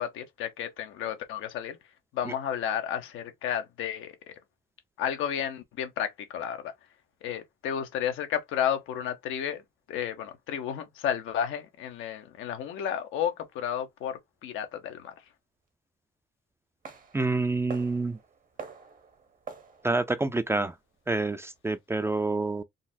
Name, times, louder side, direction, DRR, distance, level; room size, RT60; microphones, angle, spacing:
voice 1, 0.0-1.8 2.1-4.3 5.0-6.7 7.2-9.6 9.9-15.1, left 9 dB, 90° left, 0.7 m, -32 dB
sound 1, 16.8-21.6, right 5 dB, 45° right, 0.8 m, -47 dB
voice 2, 17.1-18.2 19.8-20.7 21.1-22.6, right 3 dB, 15° right, 0.3 m, -27 dB
3.8 x 2.1 x 2.6 m
cardioid pair, 90°, 20 cm